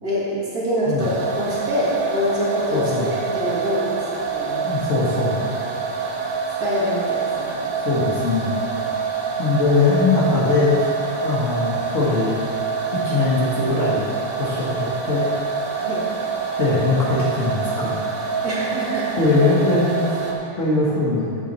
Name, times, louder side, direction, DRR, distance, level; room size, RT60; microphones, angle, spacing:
voice 1, 0.0-4.6 6.6-7.6 15.8-16.0 18.4-19.1 20.5-20.6, equal, 50° right, -7 dB, 2.4 m, -25 dB
sound 1, 1.0-20.3, right 5 dB, 80° right, 1.7 m, -26 dB
voice 2, 2.7-3.1 4.6-5.5 7.8-8.5 9.4-10.9 11.2-12.4 13.0-14.1 14.4-15.6 16.6-17.9 19.2-20.0 20.6-21.4, left 3 dB, 45° left, -7 dB, 1.5 m, -21 dB
7.3 x 5.7 x 7.2 m, 2.9 s
omnidirectional pair, 2.1 m